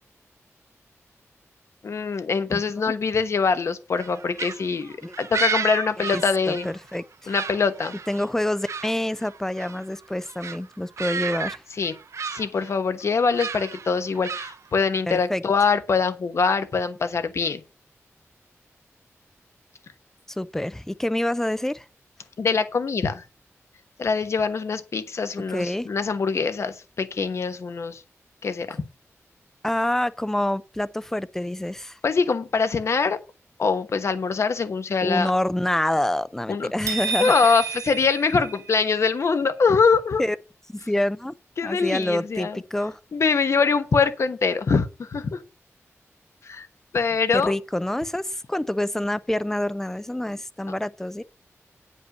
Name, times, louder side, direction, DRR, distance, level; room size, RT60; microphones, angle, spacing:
voice 1, 1.8-6.7 7.3-8.0 11.8-11.9 12.2-17.6 22.4-23.2 24.0-28.0 28.4-28.8 32.0-33.2 33.6-35.3 36.5-36.9 37.2-40.2 41.6-42.6 43.1-45.4 46.4-46.7 46.9-47.6, left 5 dB, 60° left, 1.1 m, -23 dB
sound 1, 4.0-7.0 7.3-8.9 9.2-9.8 10.3-10.6 11.0-11.6 11.8-12.7 13.3-14.8, right 5 dB, 70° right, 0.7 m, -32 dB
voice 2, 6.1-7.3 8.1-11.6 15.1-15.4 20.3-21.8 25.5-25.9 29.6-32.0 35.0-37.3 40.2-40.4 40.7-41.4 41.6-43.0 47.3-51.2, left 1 dB, 10° left, 0.4 m, -27 dB
sound 2, 36.9-39.0, right 5 dB, 85° right, 1.9 m, -30 dB
9.6 x 5.3 x 6.4 m
wide cardioid pair, 155°, 5 cm